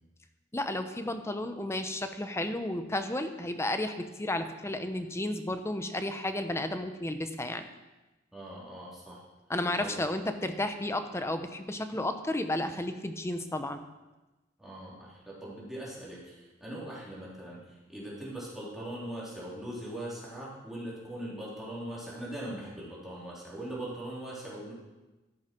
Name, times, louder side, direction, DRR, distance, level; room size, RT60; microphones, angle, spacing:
voice 1, 0.5-7.6 9.5-13.8, left 1 dB, 15° left, 8 dB, 0.8 m, -32 dB
voice 2, 8.3-9.2 9.8-10.0 14.6-24.7, right 1 dB, ahead, -7 dB, 3.2 m, -41 dB
13.5 x 10.5 x 4.4 m, 1.1 s
head